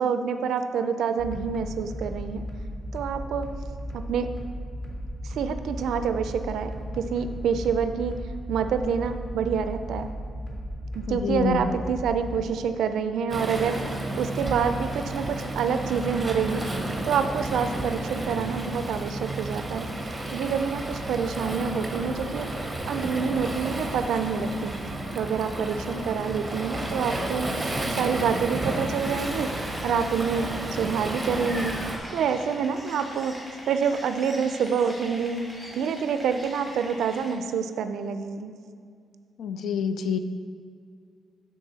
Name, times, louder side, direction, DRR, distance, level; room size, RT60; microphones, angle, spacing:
voice 1, 0.0-2.4 2.9-3.5 3.9-4.3 5.2-8.2 8.5-10.1 10.9-16.7 17.0-19.9 20.3-22.5 22.9-24.7 25.1-27.7 28.0-29.5 29.8-31.8 32.1-33.4 33.7-38.5, right 6 dB, 80° right, 9 dB, 0.3 m, -27 dB
sound 1, 1.2-12.4, equal, 35° left, 1.3 m, -36 dB
voice 2, 11.1-11.7 39.4-40.2, left 6 dB, 70° left, 10 dB, 0.4 m, -27 dB
Waves surf, 13.3-32.0, right 1 dB, 10° right, 0.7 m, -32 dB
sound 2, 28.9-37.3, equal, 15° left, 1.5 m, -42 dB
11.0 x 3.7 x 4.0 m, 2.2 s
cardioid pair, 150°, 0 cm